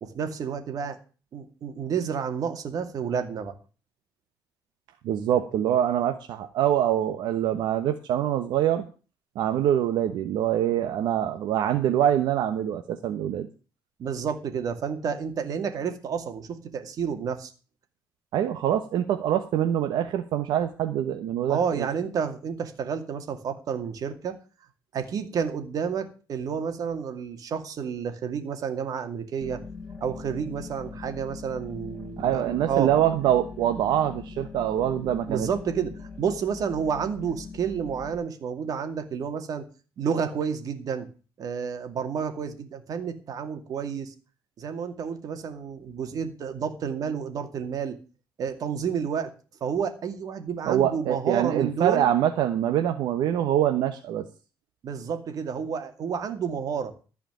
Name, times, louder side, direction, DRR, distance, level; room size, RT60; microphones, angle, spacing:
voice 1, 0.0-1.0 1.3-3.5 14.0-17.5 21.5-24.4 24.9-29.6 30.0-32.9 35.3-39.7 40.0-41.1 41.4-44.1 44.6-47.9 48.4-49.3 49.6-52.1 54.8-56.9, right 7 dB, 55° right, 7 dB, 2.3 m, -30 dB
voice 2, 5.0-8.9 9.3-13.5 18.3-21.9 32.2-35.5 50.7-54.2, right 11 dB, 80° right, 6 dB, 1.1 m, -24 dB
sound 1, 29.4-38.2, left 4 dB, 15° left, 3.9 m, -41 dB
14.5 x 5.0 x 9.2 m, 0.35 s
cardioid pair, 120°, 7 cm